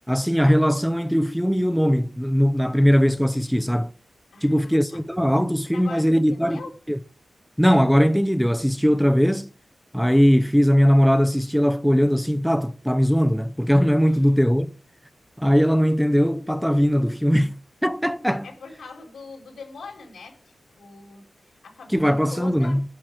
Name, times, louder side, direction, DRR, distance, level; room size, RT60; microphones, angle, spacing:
voice 1, 0.1-3.9 4.4-6.6 6.9-7.0 7.6-9.5 9.9-14.7 15.4-17.5 17.8-18.5 21.9-22.8, equal, ahead, 0.6 m, -20 dB
voice 2, 4.3-5.0 5.6-6.8 14.0-14.3 18.4-22.8, left 4 dB, 85° left, 4.5 m, -42 dB
10.5 x 6.4 x 8.9 m
wide cardioid pair, 150°, 0 cm